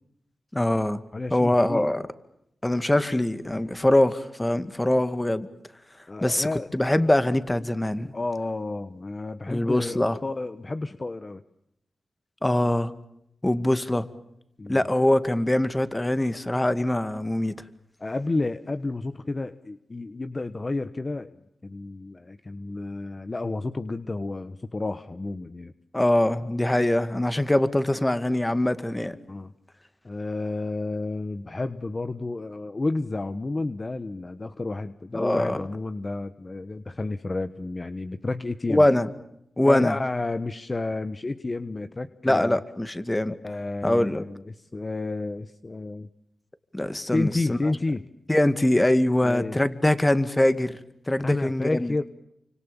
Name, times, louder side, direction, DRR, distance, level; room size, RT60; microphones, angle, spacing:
voice 1, 0.5-1.0 1.3-2.0 2.6-5.5 6.2-6.5 6.7-8.1 9.5-10.2 12.4-12.9 13.4-14.1 14.7-17.6 25.9-29.2 35.1-35.6 38.7-39.1 39.6-40.0 42.2-43.3 43.8-44.2 46.7-47.6 48.3-50.8 51.1-51.9, left 1 dB, 15° left, 12 dB, 2.1 m, -23 dB
voice 2, 1.1-1.9 6.1-6.7 8.1-11.4 14.6-14.9 18.0-25.7 29.3-29.5 30.0-38.9 39.6-42.6 43.4-46.1 47.1-48.1 49.2-49.6 51.2-52.0, left 2 dB, 35° left, 11 dB, 1.1 m, -31 dB
29.0 x 26.0 x 7.0 m, 0.78 s
cardioid pair, 70°, 0 cm